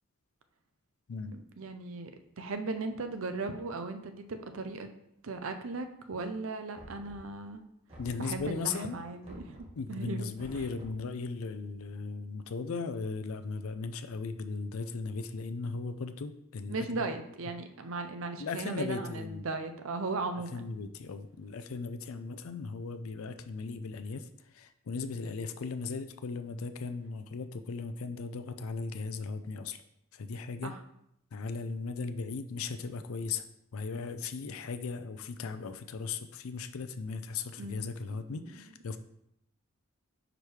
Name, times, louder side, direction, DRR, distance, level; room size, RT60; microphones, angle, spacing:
voice 1, 1.3-2.1 2.4-4.9 5.2-7.7 8.2-9.6 9.9-10.3 16.7-20.6 30.6-30.8 37.6-37.9 38.3-38.6, right 3 dB, 75° right, 8 dB, 0.6 m, -37 dB
Knock, 6.7-7.5 7.9-8.7 9.2-9.9 10.4-11.1, equal, 25° right, 1.8 m, -50 dB
voice 2, 8.0-9.0 9.8-17.1 18.4-19.4 20.5-29.8 30.1-30.7 31.3-33.4 33.7-39.0, left 4 dB, 80° left, 9 dB, 0.4 m, -37 dB
5.0 x 4.8 x 4.5 m, 0.77 s
head